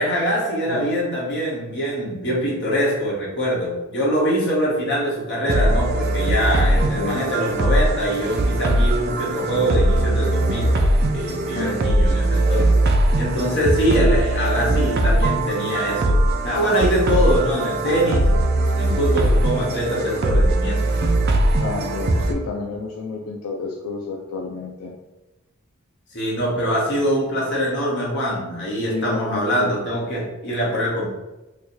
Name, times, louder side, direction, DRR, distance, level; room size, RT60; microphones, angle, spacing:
voice 1, 0.0-10.7 11.1-12.6 13.1-18.3 18.7-20.8 26.1-31.1, equal, 50° left, -5 dB, 1.2 m, -23 dB
sound 1, 5.5-22.3, right 1 dB, 45° right, 0.4 m, -20 dB
voice 2, 6.9-7.3 11.5-12.2 21.6-24.9 28.9-29.8, left 3 dB, 80° left, -1 dB, 0.4 m, -30 dB
3.2 x 2.2 x 4.2 m, 1.0 s
head